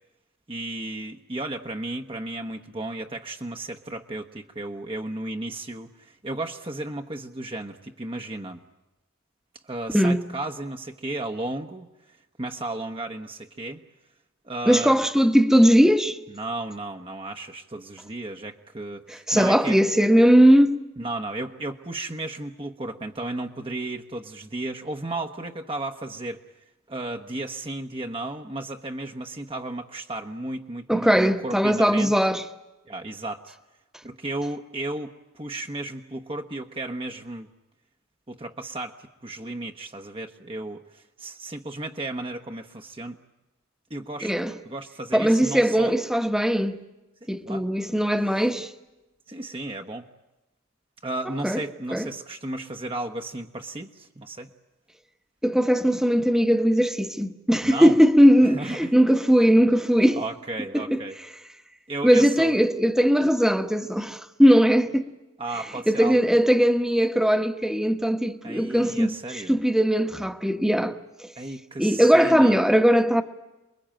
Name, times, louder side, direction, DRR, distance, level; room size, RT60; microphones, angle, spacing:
voice 1, 0.5-8.6 9.6-13.8 14.4-15.0 16.3-19.8 21.0-26.4 26.9-32.1 32.9-33.5 34.0-37.5 38.3-43.2 43.9-44.3 44.6-46.0 47.2-47.7 49.3-50.1 51.0-54.5 57.6-58.0 58.4-58.9 60.1-61.2 61.9-62.5 65.4-66.2 68.4-69.6 71.3-72.6, right 2 dB, 25° right, 1.1 m, -34 dB
voice 2, 14.7-16.2 19.1-20.8 30.9-32.4 44.2-44.5 45.1-46.8 47.3-48.7 51.4-51.6 51.9-52.1 55.4-60.2 60.7-61.0 62.0-65.1 65.9-71.3 71.8-73.2, equal, ahead, 1.2 m, -19 dB
28.5 x 22.0 x 8.9 m
head